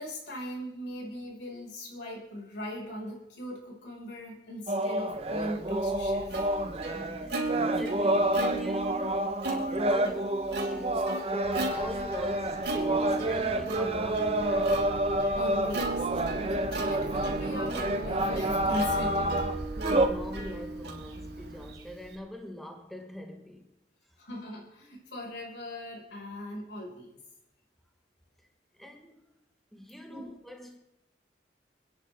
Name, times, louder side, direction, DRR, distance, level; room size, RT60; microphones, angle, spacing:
voice 1, 0.0-6.3 15.3-19.4 24.2-27.2 30.1-30.4, equal, 90° left, 5.3 m, -39 dB
sound 1, 4.7-20.1, right 1 dB, 35° right, 1.0 m, -29 dB
Plucked string instrument, 5.4-22.1, right 3 dB, 80° right, 3.7 m, -36 dB
voice 2, 6.8-10.4 10.7-11.0 11.3-14.7 19.9-23.7 28.4-28.5 28.8-29.3 29.7-30.8, equal, ahead, 1.3 m, -42 dB
sound 2, 11.4-21.7, right 1 dB, 60° right, 1.4 m, -41 dB
28.0 x 10.0 x 3.5 m
head